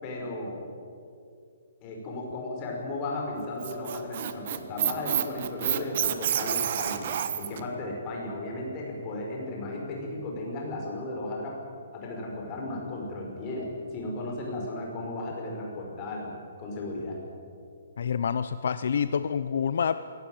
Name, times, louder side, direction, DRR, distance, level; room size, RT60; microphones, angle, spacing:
voice 1, 0.0-0.6 1.8-7.1 7.4-11.5 11.9-16.3 16.6-17.2, left 2 dB, 25° left, -1 dB, 5.5 m, -35 dB
Squeak, 3.4-7.6, right 10 dB, 40° right, 1.3 m, -29 dB
voice 2, 18.0-20.0, left 7 dB, 60° left, 13 dB, 0.7 m, -27 dB
21.5 x 18.0 x 9.2 m, 2.4 s
hypercardioid pair, 170°, 0 cm